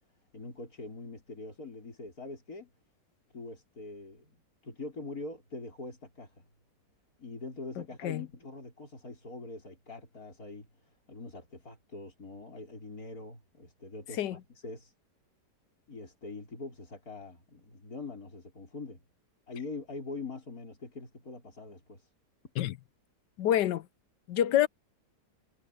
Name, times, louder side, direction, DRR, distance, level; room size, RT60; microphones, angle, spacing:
voice 1, 0.3-2.7 3.3-6.4 7.2-10.7 11.1-14.9 15.9-19.0 19.5-22.1, left 3 dB, 60° left, 5.8 m, -43 dB
voice 2, 7.8-8.2 14.2-14.4 22.6-22.7 23.4-23.9 24.3-24.7, left 11 dB, 90° left, 1.4 m, -27 dB
omnidirectional pair, 1.8 m